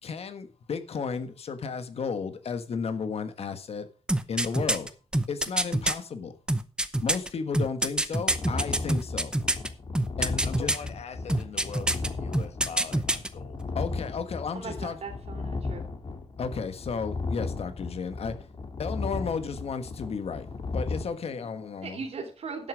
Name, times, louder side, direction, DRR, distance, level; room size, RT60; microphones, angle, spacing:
voice 1, 0.0-3.9 4.3-4.9 5.3-6.3 7.0-9.3 10.2-10.8 13.7-15.0 16.4-18.5 18.8-22.0, left 5 dB, 70° left, 1.5 m, -33 dB
sound 1, 4.1-5.9 6.5-9.7 9.9-10.9 11.3-12.1 12.3-13.3 13.6-13.7, right 1 dB, 10° right, 0.8 m, -25 dB
sound 2, 8.3-21.0, left 3 dB, 50° left, 2.1 m, -35 dB
voice 2, 10.3-13.6, left 6 dB, 90° left, 1.2 m, -42 dB
voice 3, 14.5-15.9 21.8-22.7, right 5 dB, 75° right, 3.2 m, -38 dB
11.5 x 8.0 x 5.0 m
wide cardioid pair, 165°, 11 cm